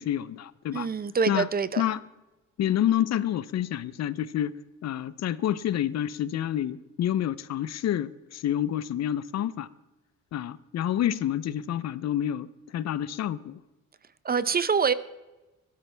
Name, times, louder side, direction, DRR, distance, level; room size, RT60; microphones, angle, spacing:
voice 1, 0.0-0.9 1.3-1.5 1.8-2.0 2.6-4.6 4.8-9.7 10.3-13.6, left 11 dB, 60° left, 0.6 m, -28 dB
voice 2, 0.7-1.8 14.2-14.9, right 6 dB, 30° right, 0.6 m, -25 dB
15.5 x 12.5 x 3.4 m
cardioid pair, 90°, 30 cm